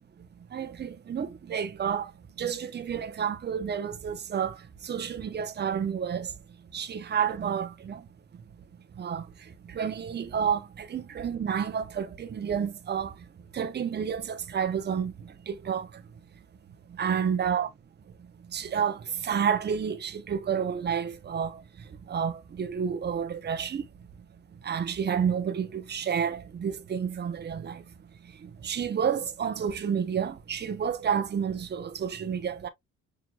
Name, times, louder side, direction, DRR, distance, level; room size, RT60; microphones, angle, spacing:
voice 1, 0.5-2.1 2.4-4.6 4.8-6.3 6.7-8.0 9.0-9.2 9.7-13.1 13.5-15.1 15.5-15.9 17.0-17.7 18.5-21.6 22.1-23.8 24.6-27.8 28.4-32.7, right 7 dB, 35° right, 0.7 m, -30 dB
6.0 x 2.8 x 2.3 m
cardioid pair, 90°, 30 cm